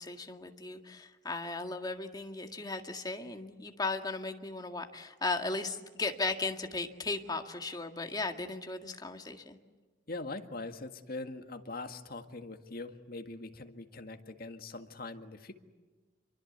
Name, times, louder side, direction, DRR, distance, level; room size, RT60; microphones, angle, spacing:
voice 1, 0.0-9.6, left 3 dB, 20° left, 5 dB, 1.9 m, -36 dB
voice 2, 10.1-15.5, left 2 dB, 55° left, 7 dB, 1.8 m, -42 dB
28.0 x 23.5 x 8.1 m, 1.3 s
head